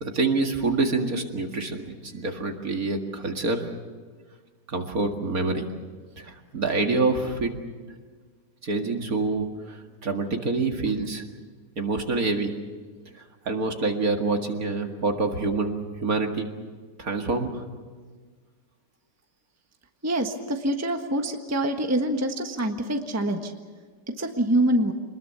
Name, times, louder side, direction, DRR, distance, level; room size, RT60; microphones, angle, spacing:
voice 1, 0.0-3.7 4.7-5.7 6.2-7.5 8.6-11.2 11.8-12.5 13.1-16.5 17.0-17.6, right 3 dB, 55° right, 3 dB, 2.5 m, -26 dB
voice 2, 20.0-23.5 24.1-24.9, right 1 dB, 10° right, 4 dB, 1.2 m, -25 dB
26.5 x 21.0 x 7.0 m, 1.5 s
omnidirectional pair, 1.9 m